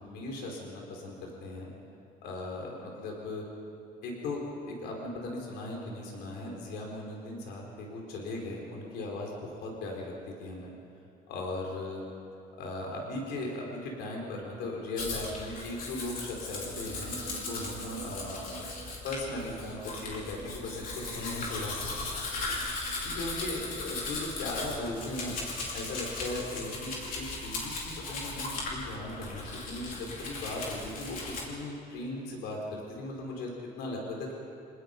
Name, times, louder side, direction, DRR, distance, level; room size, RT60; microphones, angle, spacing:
voice 1, 0.0-1.7 2.2-3.5 4.0-10.7 11.3-12.1 12.6-18.6 19.0-21.9 22.4-22.8 23.0-25.3 25.7-31.2 31.4-34.3, left 2 dB, 85° left, 0 dB, 4.8 m, -38 dB
Domestic sounds home sounds, 15.0-31.5, left 3 dB, 55° left, 5.5 m, -37 dB
sound 1, 16.6-25.2, right 9 dB, 90° right, 2.3 m, -51 dB
28.0 x 20.0 x 5.4 m, 2.6 s
cardioid pair, 110°, 17 cm